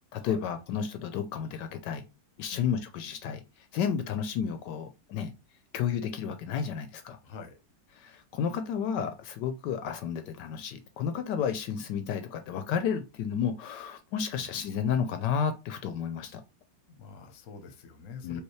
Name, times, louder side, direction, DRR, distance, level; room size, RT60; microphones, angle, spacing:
voice 1, 0.1-2.0 2.4-5.3 5.7-7.2 8.0-16.4 18.2-18.4, left 7 dB, 75° left, 1.1 m, -32 dB
voice 2, 7.2-7.6 14.3-14.5 16.9-18.4, left 5 dB, 55° left, 1.0 m, -46 dB
4.7 x 2.8 x 3.1 m
omnidirectional pair, 1.9 m